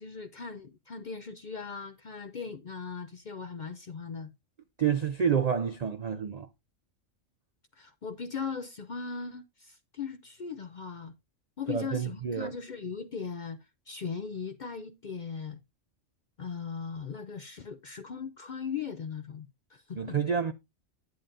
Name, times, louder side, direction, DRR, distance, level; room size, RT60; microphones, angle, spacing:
voice 1, 0.0-4.3 7.7-11.1 11.6-13.6 13.9-15.6 16.4-20.2, left 6 dB, 55° left, 0.5 m, -39 dB
voice 2, 4.8-6.5 11.7-12.5 19.9-20.5, right 7 dB, 60° right, 0.4 m, -28 dB
10.0 x 8.8 x 2.6 m
omnidirectional pair, 1.3 m